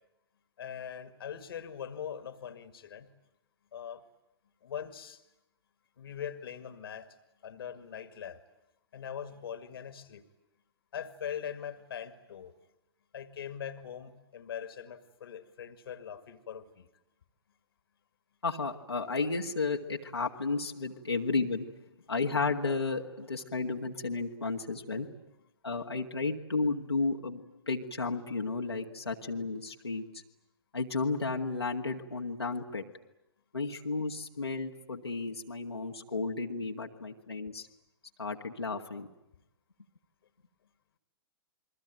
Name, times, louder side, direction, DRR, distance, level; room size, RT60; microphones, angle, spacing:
voice 1, 0.6-3.1 3.7-4.0 4.6-5.2 6.0-7.1 7.4-8.4 8.9-10.2 10.9-12.5 13.1-16.9, left 8 dB, 65° left, 12 dB, 2.2 m, -41 dB
voice 2, 18.4-21.7 22.1-25.1 25.6-30.0 30.7-32.9 33.5-37.7 38.2-39.1, left 3 dB, 85° left, 0 dB, 2.1 m, -33 dB
29.0 x 22.5 x 9.1 m, 0.87 s
figure-of-eight pair, 110°, 13 cm